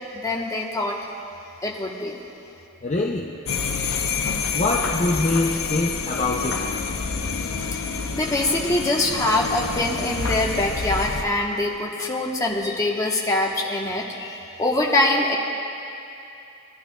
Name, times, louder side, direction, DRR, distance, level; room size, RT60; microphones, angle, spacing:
voice 1, 0.1-1.0 1.6-2.2 7.7-7.8 8.1-15.4, left 2 dB, 15° left, -2 dB, 1.0 m, -24 dB
voice 2, 2.8-3.4 4.5-6.6, left 2 dB, 35° left, -2 dB, 0.5 m, -24 dB
sound 1, 3.5-11.2, left 5 dB, 85° left, 0.7 m, -28 dB
18.5 x 11.0 x 2.3 m, 2.7 s
head